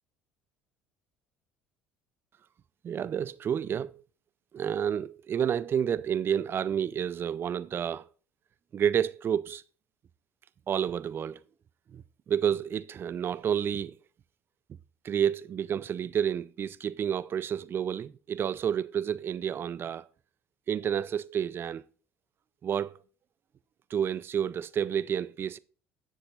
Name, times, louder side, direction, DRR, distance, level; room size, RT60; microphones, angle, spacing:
voice 1, 2.8-4.0 4.5-8.1 8.7-9.6 10.7-11.4 11.9-14.0 15.0-20.1 20.7-21.8 22.6-23.0 23.9-25.6, right 8 dB, 40° right, 0.4 m, -30 dB
7.1 x 6.5 x 3.9 m
hypercardioid pair, 65°, 6 cm